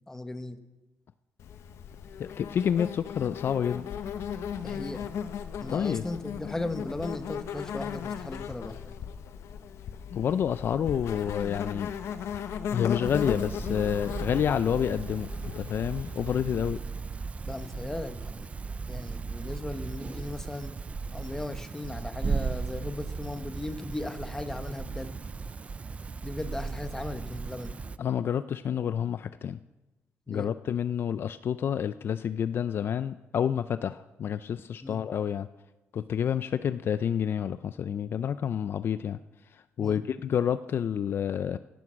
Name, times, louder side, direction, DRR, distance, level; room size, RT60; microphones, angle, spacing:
voice 1, 0.1-0.6 4.6-5.1 5.6-8.9 17.4-18.5 18.9-20.7 21.1-25.1 26.2-27.8 30.3-30.5 34.8-35.0 39.8-40.1, left 2 dB, 10° left, 9 dB, 1.0 m, -37 dB
Insect, 1.4-16.6, left 8 dB, 70° left, 1.0 m, -37 dB
voice 2, 2.2-3.8 5.7-6.0 10.1-11.9 12.7-15.3 15.6-16.8 28.0-29.6 30.3-35.5 35.9-39.2 39.5-41.6, left 8 dB, 50° left, 13 dB, 0.4 m, -29 dB
sound 1, 13.0-28.0, right 4 dB, 25° right, 0.4 m, -36 dB
17.0 x 10.5 x 6.2 m, 1.1 s
cardioid pair, 140°, 5 cm